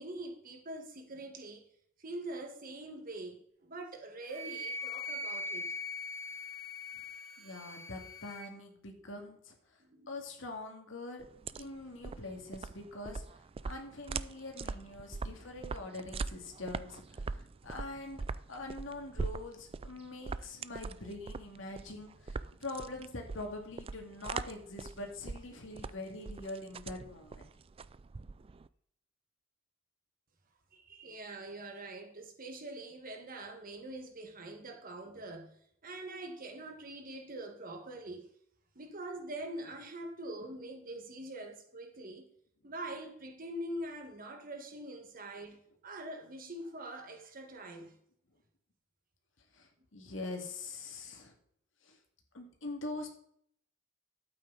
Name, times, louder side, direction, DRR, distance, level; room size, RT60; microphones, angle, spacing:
voice 1, 0.0-1.7 2.0-5.7 9.8-10.2 30.7-38.3 38.8-42.3 42.6-48.0, right 1 dB, 45° right, 1.6 m, -44 dB
Wind instrument woodwind instrument, 4.3-8.5, left 2 dB, 75° right, 3.5 m, -41 dB
voice 2, 7.4-9.5 10.1-11.2 11.6-13.2 13.6-18.2 18.5-27.5 49.5-51.3 51.8-52.0 52.3-53.1, left 2 dB, 75° left, 2.3 m, -44 dB
sound 1, 11.2-28.7, right 4 dB, 30° right, 0.3 m, -42 dB
12.0 x 8.6 x 4.0 m
head